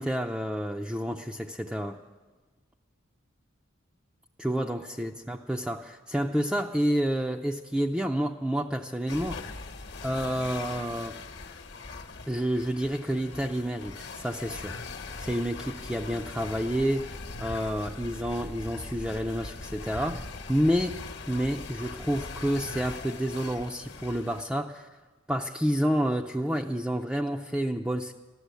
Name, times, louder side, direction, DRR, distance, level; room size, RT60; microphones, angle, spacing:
voice 1, 0.0-2.0 4.4-9.7 10.0-11.2 12.3-21.0 21.3-24.9 25.3-28.1, equal, 5° right, 1 dB, 0.5 m, -29 dB
sound 1, 9.1-24.4, left 3 dB, 55° left, 1.1 m, -41 dB
14.5 x 11.5 x 8.2 m, 1.3 s
head